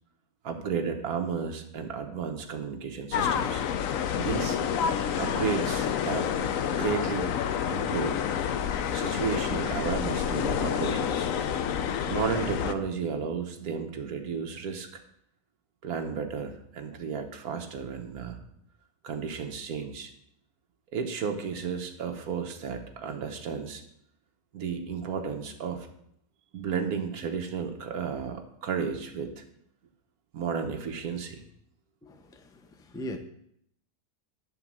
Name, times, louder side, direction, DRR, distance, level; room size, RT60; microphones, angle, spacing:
voice 1, 0.4-3.6 4.1-4.6 5.2-6.3 6.7-7.3 7.7-8.2 8.9-11.3 12.1-15.0 15.8-18.4 19.0-20.1 20.9-23.8 24.5-25.9 26.5-29.4 30.3-31.4, right 6 dB, 70° right, 1.5 m, -33 dB
sound 1, 3.1-12.7, left 8 dB, 65° left, 1.0 m, -28 dB
voice 2, 32.0-33.2, equal, 5° left, 0.3 m, -40 dB
11.0 x 3.9 x 7.4 m
omnidirectional pair, 1.7 m